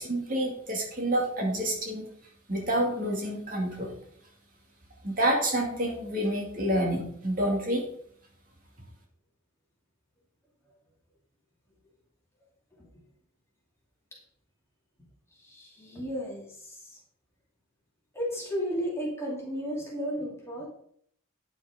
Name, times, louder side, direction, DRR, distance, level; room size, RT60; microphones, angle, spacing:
voice 1, 0.0-2.0 2.5-3.9 5.0-7.8, right 1 dB, 40° right, -1 dB, 2.4 m, -28 dB
voice 2, 15.3-17.0 18.1-20.7, equal, 10° left, -3 dB, 2.4 m, -34 dB
10.0 x 6.0 x 5.1 m, 0.63 s
head